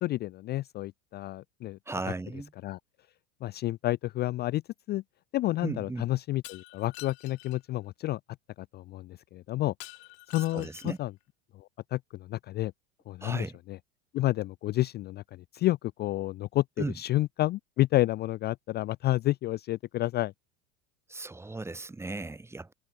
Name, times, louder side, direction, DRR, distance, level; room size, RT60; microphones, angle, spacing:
voice 1, 0.0-1.8 2.6-2.8 3.4-4.6 4.9-5.0 5.3-8.2 8.6-9.7 10.3-11.1 11.5-12.7 13.1-13.8 14.1-20.3, left 16 dB, 30° left, 0.4 m, -30 dB
voice 2, 1.9-2.5 5.6-6.1 10.5-11.0 13.2-13.6 16.8-16.9 21.1-22.7, right 2 dB, 5° right, 0.8 m, -36 dB
Shatter, 6.4-7.6 9.8-11.1, left 31 dB, 65° left, 3.4 m, -47 dB
hypercardioid pair, 95°, 35 cm